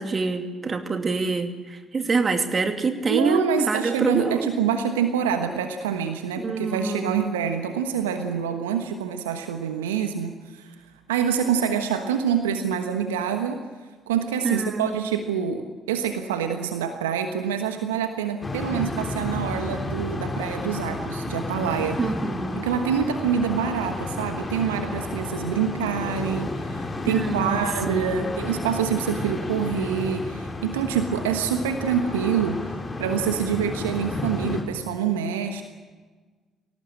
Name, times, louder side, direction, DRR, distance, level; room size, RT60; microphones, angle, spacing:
voice 1, 0.0-4.5 6.4-7.3 14.4-14.9 22.0-22.7 27.1-27.6 27.9-28.3, right 4 dB, 35° right, 6 dB, 2.6 m, -26 dB
voice 2, 3.1-10.7 11.1-13.6 14.1-22.0 22.6-32.6 33.0-35.6, right 7 dB, 80° right, 7 dB, 1.2 m, -26 dB
sound 1, 18.4-34.6, left 2 dB, 25° left, 4.7 m, -31 dB
24.0 x 18.0 x 8.7 m, 1.4 s
hypercardioid pair, 45°, 0 cm